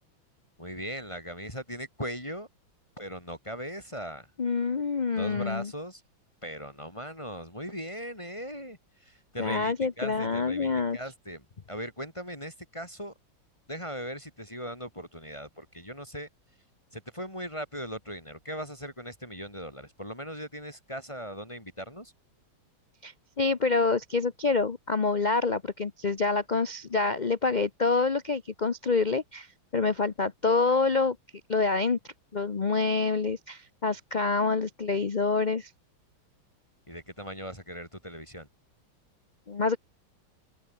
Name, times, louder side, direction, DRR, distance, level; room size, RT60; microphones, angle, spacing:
voice 1, 0.6-2.5 3.0-4.3 5.1-6.0 6.4-13.1 13.7-16.3 16.9-22.1 36.9-38.5, equal, 15° left, 6.0 m, -39 dB
voice 2, 4.4-5.7 9.4-11.0 23.0-29.5 29.7-31.2 31.5-32.0 32.3-35.7 39.5-39.8, left 4 dB, 60° left, 0.4 m, -27 dB
open air
omnidirectional pair, 2.2 m